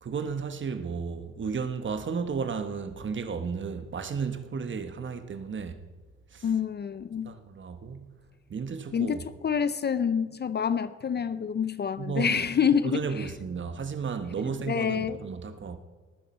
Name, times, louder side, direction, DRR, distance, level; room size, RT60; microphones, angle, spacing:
voice 1, 0.0-5.8 6.3-6.5 7.2-8.1 8.5-9.2 12.0-12.5 12.8-15.8, right 5 dB, 40° right, 1.1 m, -33 dB
voice 2, 6.4-7.3 8.9-9.2 9.4-13.0 14.7-15.2, left 7 dB, 35° left, 0.5 m, -27 dB
19.0 x 10.0 x 4.3 m
cardioid pair, 90°, 30 cm